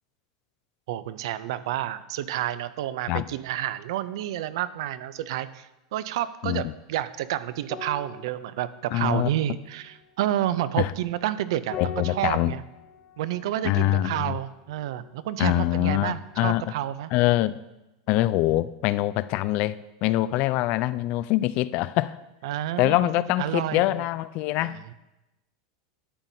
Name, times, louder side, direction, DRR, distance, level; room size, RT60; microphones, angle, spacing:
voice 1, 0.9-12.6 13.2-17.1 22.4-24.0 24.6-24.9, right 12 dB, 75° right, 14 dB, 0.4 m, -30 dB
sound 1, 7.6-16.4 16.7-16.9, left 5 dB, 35° left, 0.8 m, -45 dB
voice 2, 8.9-9.3 10.8-10.9 11.7-12.5 13.6-14.4 15.4-16.6 17.1-17.6 18.1-22.2 22.8-24.9, left 16 dB, 50° left, 16 dB, 0.3 m, -24 dB
11.5 x 7.2 x 2.7 m, 0.97 s
supercardioid pair, 125°, 3 cm